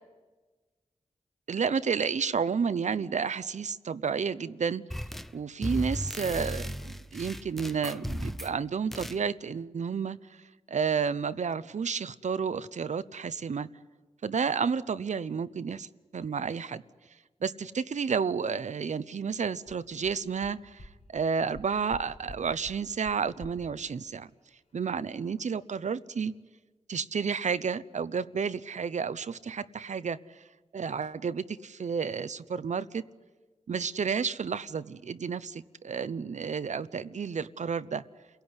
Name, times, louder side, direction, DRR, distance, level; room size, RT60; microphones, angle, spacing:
voice 1, 1.5-4.8 5.3-10.4 10.7-13.7 14.2-15.9 16.1-16.8 17.4-24.3 24.7-26.3 26.9-30.2 30.7-33.0 33.7-38.0, right 6 dB, 70° right, 15 dB, 0.8 m, -31 dB
sound 1, 4.9-5.3 5.6-8.6 8.9-9.2, equal, ahead, 0.8 m, -36 dB
sound 2, 19.7-19.8 20.0-20.1 20.4-20.5 20.8-20.9 21.2-21.3 21.5-22.0 22.3-22.4 22.6-22.7 23.0-23.1 23.4-23.5, left 2 dB, 70° left, 4.2 m, -45 dB
29.0 x 17.0 x 9.8 m, 1.3 s
wide cardioid pair, 80°, 13 cm